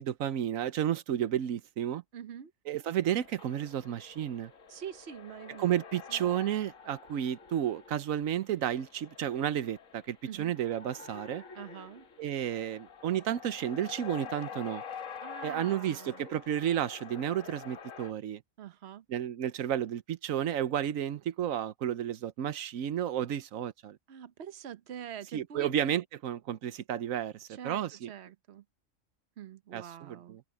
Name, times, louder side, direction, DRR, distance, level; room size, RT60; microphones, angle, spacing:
voice 1, 0.0-2.0 2.7-4.5 5.6-11.4 12.2-14.8 15.4-18.4 19.1-24.0 25.3-28.1 29.7-30.4, right 10 dB, 90° right, 1.2 m, -32 dB
voice 2, 2.1-2.5 4.7-5.7 6.1-6.3 10.2-10.5 11.5-12.1 15.2-16.2 18.6-19.0 24.1-25.7 27.5-28.6 29.4-30.4, right 9 dB, 55° right, 1.1 m, -45 dB
sound 1, 3.0-18.1, left 6 dB, 85° left, 1.8 m, -47 dB
omnidirectional pair, 1.4 m